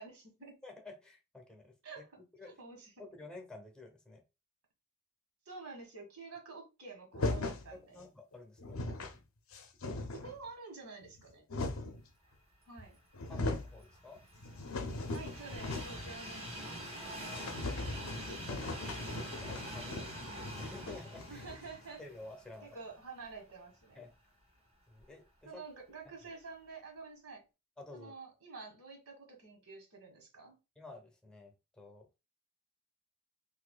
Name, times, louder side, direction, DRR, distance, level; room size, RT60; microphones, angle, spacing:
voice 1, 0.0-0.6 1.8-2.2 2.4-2.9 5.4-8.0 10.1-11.4 12.7-13.0 15.1-16.6 21.3-22.0 22.6-24.1 25.4-27.4 27.9-30.6, right 4 dB, 85° right, 1.5 m, -49 dB
voice 2, 0.6-1.7 2.4-2.6 3.0-4.2 7.7-9.2 11.3-11.7 13.3-14.2 18.3-21.4 22.0-22.7 23.9-24.1 24.9-25.6 26.0-26.1 27.8-28.1 30.8-32.1, left 2 dB, 5° left, 0.8 m, -52 dB
sound 1, 7.1-7.7 8.3-8.4 8.6-9.2 9.5-10.4 11.1-12.0 12.8-12.9 13.1-13.7 14.2-16.1 16.4-16.5 16.8-16.9 17.3-21.8, left 2 dB, 70° left, 0.6 m, -39 dB
Train, 13.2-23.4 23.8-23.9 25.0-25.1, equal, 30° right, 1.6 m, -46 dB
4.1 x 2.7 x 2.2 m
head